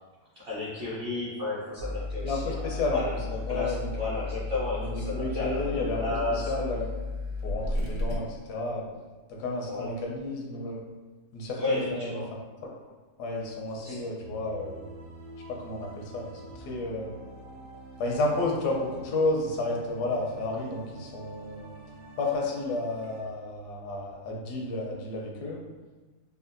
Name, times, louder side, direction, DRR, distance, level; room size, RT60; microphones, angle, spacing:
voice 1, 0.3-6.5 8.1-8.2 9.6-9.9 11.6-12.3 13.7-14.0, left 2 dB, 50° right, -8 dB, 0.7 m, -33 dB
sound 1, 1.8-8.2, left 3 dB, 65° left, 0.6 m, -34 dB
voice 2, 2.2-3.0 3.5-3.9 4.8-6.0 6.3-6.8 7.4-8.9 9.4-10.8 11.3-12.2 12.6-12.7 13.2-14.8 15.5-17.2 18.0-21.7 22.2-25.6, left 2 dB, 85° left, -1 dB, 1.2 m, -31 dB
sound 2, 14.2-23.2, right 2 dB, 75° right, 1.1 m, -46 dB
3.5 x 2.2 x 2.5 m, 1.2 s
omnidirectional pair, 1.7 m